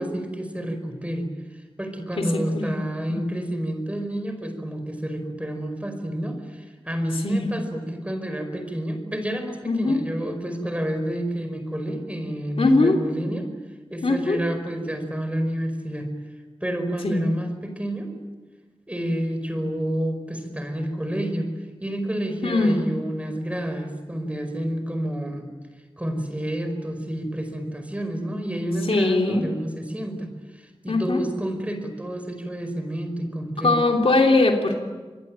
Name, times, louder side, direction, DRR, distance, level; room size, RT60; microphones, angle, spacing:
voice 1, 0.0-13.5 13.9-16.1 16.6-18.1 18.9-21.5 21.8-25.5 26.0-33.7, right 1 dB, 15° right, 6 dB, 5.1 m, -29 dB
voice 2, 9.6-10.0 12.6-13.0 14.0-14.4 17.0-17.2 22.4-22.8 28.2-28.3 28.9-29.5 30.9-31.3 33.6-34.8, left 2 dB, 75° left, 2 dB, 3.2 m, -21 dB
26.0 x 21.5 x 9.1 m, 1.3 s
wide cardioid pair, 75°, 10 cm